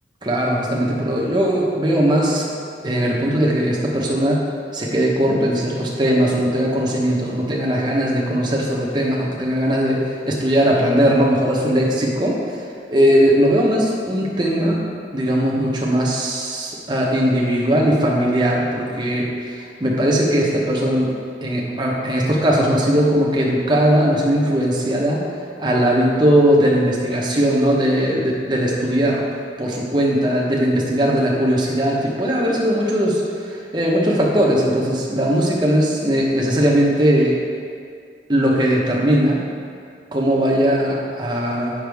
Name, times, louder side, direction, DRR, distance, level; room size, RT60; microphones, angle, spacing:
voice 1, 0.2-2.5 2.8-4.4 4.7-12.4 12.9-14.8 15.1-21.1 21.4-25.2 25.6-29.2 29.6-37.4 38.3-39.4 40.1-41.7, equal, 25° right, -3 dB, 1.0 m, -19 dB
7.9 x 5.8 x 3.5 m, 2.3 s
head